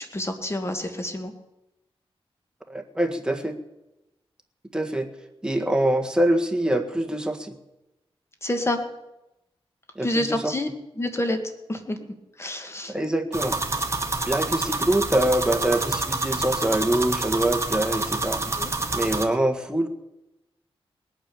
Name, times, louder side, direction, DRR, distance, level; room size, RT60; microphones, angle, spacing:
voice 1, 0.0-1.3 8.4-8.8 10.0-10.7 11.0-11.4 11.7-12.0 12.4-12.9 18.6-18.7, left 1 dB, 25° left, 6 dB, 2.0 m, -27 dB
voice 2, 2.7-3.6 4.7-5.1 5.4-7.5 9.9-10.5 12.9-13.6 14.3-18.4 18.9-19.9, right 1 dB, 10° right, 4 dB, 1.8 m, -24 dB
sound 1, 13.3-19.2, right 2 dB, 30° right, 1.8 m, -27 dB
19.5 x 9.0 x 7.0 m, 0.93 s
cardioid pair, 75°, 10 cm